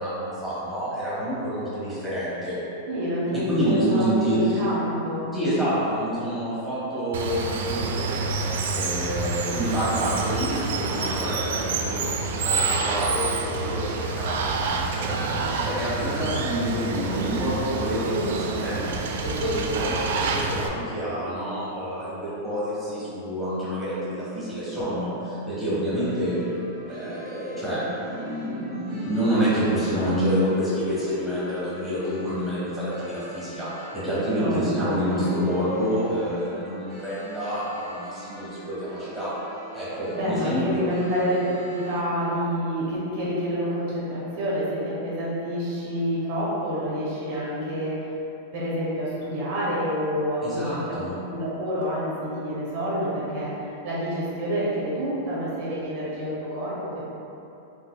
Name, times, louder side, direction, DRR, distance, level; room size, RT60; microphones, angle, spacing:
voice 1, 0.0-2.6 3.3-4.6 5.3-8.2 8.7-18.2 18.5-26.3 26.9-27.8 28.1-39.3 39.7-40.9 50.4-51.1, equal, ahead, -12 dB, 1.2 m, -28 dB
voice 2, 2.9-5.3 18.1-18.4 34.3-35.3 40.1-48.1 48.5-50.9 51.3-57.0, equal, 55° right, -7 dB, 0.9 m, -28 dB
Water, 7.1-20.7, right 4 dB, 75° right, 0.3 m, -28 dB
sound 1, 26.0-42.0, right 1 dB, 40° right, 1.2 m, -44 dB
4.4 x 2.6 x 2.2 m, 2.9 s
supercardioid pair, 145°, 0 cm